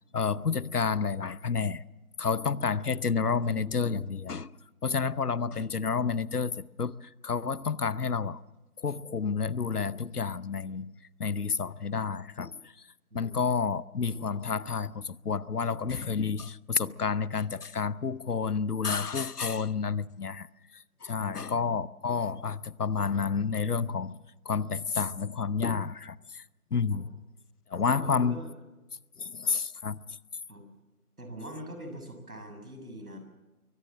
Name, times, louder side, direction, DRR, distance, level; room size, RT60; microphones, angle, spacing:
voice 1, 0.1-1.8 2.2-4.5 4.8-8.4 8.8-10.9 11.2-12.9 13.1-20.5 20.7-24.2 24.4-26.4 26.7-27.1 27.7-28.4 29.2-30.2, left 5 dB, 85° left, 0.9 m, -30 dB
voice 2, 21.2-21.5 26.9-27.0 27.9-28.5 30.5-30.7 31.2-33.2, equal, 75° right, 6.8 m, -43 dB
23.5 x 18.0 x 7.5 m
figure-of-eight pair, 175°, 45 cm